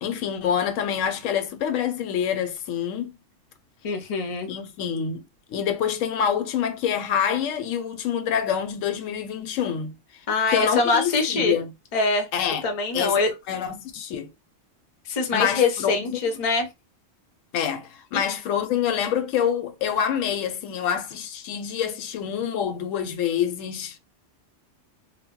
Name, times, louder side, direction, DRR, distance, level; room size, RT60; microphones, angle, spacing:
voice 1, 0.0-3.1 4.5-9.9 10.5-11.7 12.3-12.6 12.9-13.2 13.5-14.3 15.3-16.2 17.5-24.0, left 8 dB, 85° left, 0.9 m, -26 dB
voice 2, 3.8-4.5 10.3-11.6 11.9-12.3 12.6-13.3 15.1-16.7, left 3 dB, 45° left, 0.5 m, -23 dB
2.2 x 2.0 x 3.6 m
omnidirectional pair, 1.3 m